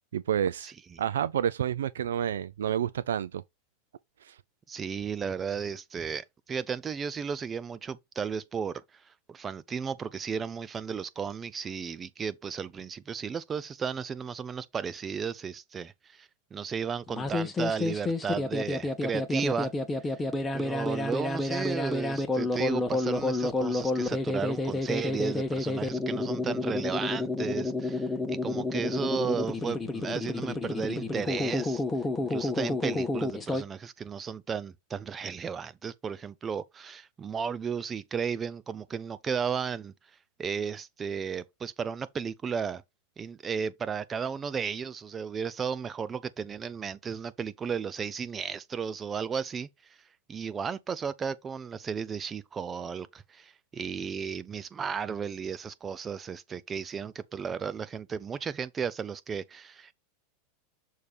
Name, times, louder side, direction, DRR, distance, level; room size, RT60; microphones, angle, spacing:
voice 1, 0.1-0.7 1.0-3.4 4.2-4.4, right 9 dB, 85° right, 0.4 m, -29 dB
voice 2, 0.6-1.0 4.7-19.7 20.5-31.8 32.2-39.9 40.4-42.8 43.2-49.7 50.3-59.9, right 6 dB, 25° right, 0.7 m, -34 dB
sound 1, 17.1-33.6, left 2 dB, 15° left, 1.3 m, -30 dB
6.6 x 3.3 x 4.3 m
hypercardioid pair, 115°, 0 cm